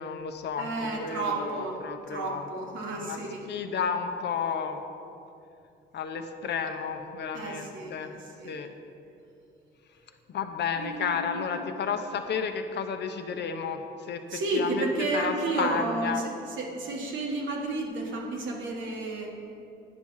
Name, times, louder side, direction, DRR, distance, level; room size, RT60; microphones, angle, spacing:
voice 1, 0.0-2.5 2.9-3.2 3.5-4.8 5.9-8.1 8.4-8.7 10.3-14.9 15.1-16.2, left 6 dB, 60° left, 6 dB, 0.7 m, -32 dB
voice 2, 0.6-1.8 2.1-3.5 7.3-8.6 10.8-11.6 14.3-16.2 16.6-19.4, right 2 dB, 75° right, -1 dB, 1.5 m, -32 dB
9.5 x 5.6 x 4.7 m, 2.7 s
cardioid pair, 90°, 20 cm